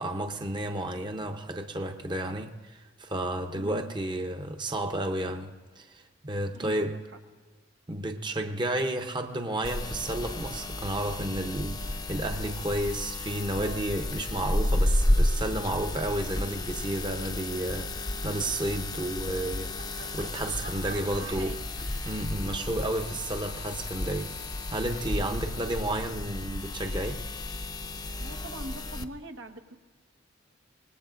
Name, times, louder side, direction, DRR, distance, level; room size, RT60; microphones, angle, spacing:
voice 1, 0.0-7.0 7.9-21.6 22.0-27.2, right 1 dB, 25° right, 0.7 m, -32 dB
voice 2, 3.5-3.9 6.5-7.2 13.6-14.0 20.8-21.6 28.2-29.8, right 2 dB, 85° right, 1.3 m, -43 dB
Laughter, 9.4-16.1 16.6-24.8, right 3 dB, 65° right, 2.6 m, -52 dB
sound 1, 9.6-29.0, left 1 dB, 20° left, 0.6 m, -32 dB
25.0 x 20.0 x 2.6 m
head